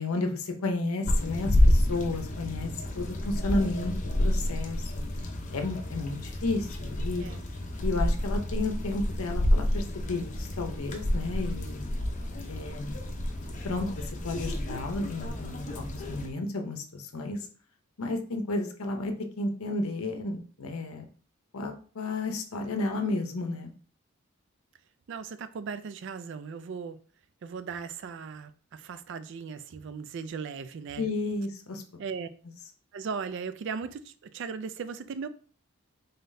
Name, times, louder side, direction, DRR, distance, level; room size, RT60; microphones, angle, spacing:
voice 1, 0.0-2.7 2.9-3.9 4.2-4.9 5.5-7.3 7.8-11.9 12.5-13.0 13.6-17.4 18.0-21.0 21.5-23.7 31.0-31.8, left 2 dB, 75° left, 0.7 m, -32 dB
sound 1, 1.0-16.3, left 1 dB, 35° left, 0.6 m, -29 dB
voice 2, 25.1-27.0 27.4-31.1 32.0-32.3 32.9-35.3, right 5 dB, 55° right, 0.3 m, -37 dB
3.9 x 3.8 x 2.6 m
head